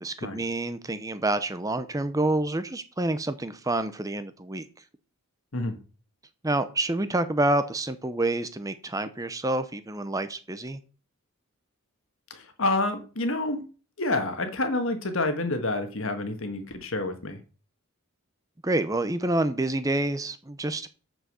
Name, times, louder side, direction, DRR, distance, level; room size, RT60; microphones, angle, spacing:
voice 1, 0.0-4.7 6.4-10.8 18.6-20.9, right 2 dB, 15° right, 12 dB, 0.6 m, -28 dB
voice 2, 12.3-13.6 14.0-17.4, left 2 dB, 65° left, 7 dB, 1.7 m, -28 dB
7.3 x 6.3 x 6.8 m, 0.37 s
head